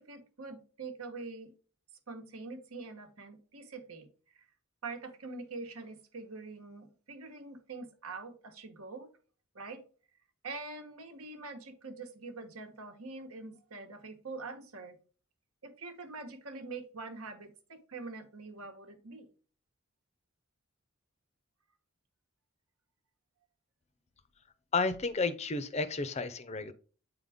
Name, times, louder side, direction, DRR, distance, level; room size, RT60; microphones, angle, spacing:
voice 1, 0.0-1.5 2.1-4.1 4.8-9.1 9.5-9.8 10.4-15.0 15.6-19.3, right 3 dB, 90° right, 1.2 m, -44 dB
voice 2, 24.7-26.7, left 4 dB, 30° left, 0.5 m, -32 dB
8.1 x 3.9 x 3.5 m
head